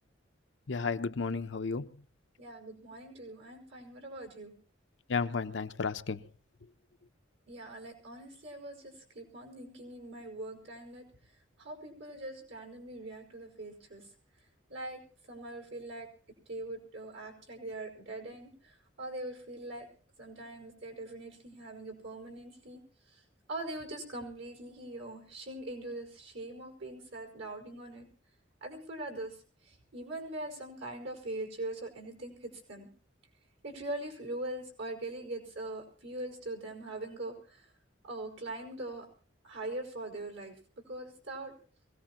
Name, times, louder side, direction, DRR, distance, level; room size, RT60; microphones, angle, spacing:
voice 1, 0.7-1.9 5.1-6.3, left 4 dB, 70° left, 10 dB, 0.7 m, -33 dB
voice 2, 2.4-4.5 7.5-11.0 11.6-14.0 14.7-15.0 15.3-16.1 16.5-19.9 20.2-22.8 23.1-23.2 23.5-28.1 28.6-29.4 29.6-32.9 33.6-37.6 38.0-39.0 39.4-40.5 40.9-41.6, right 2 dB, 80° right, 3 dB, 4.7 m, -42 dB
23.5 x 17.0 x 3.0 m, 0.41 s
head